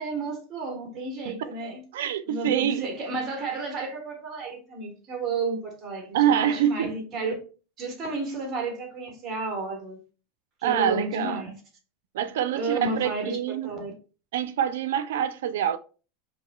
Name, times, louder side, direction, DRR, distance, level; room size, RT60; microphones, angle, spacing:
voice 1, 0.0-1.8 2.3-7.4 7.8-10.0 10.6-11.6 12.5-13.4 13.6-13.9, right 3 dB, 20° right, 1.1 m, -32 dB
voice 2, 1.3-2.9 6.1-7.0 10.6-11.4 12.1-13.7 14.3-15.8, right 10 dB, 85° right, 0.3 m, -26 dB
4.8 x 2.6 x 2.2 m
supercardioid pair, 170°, 0 cm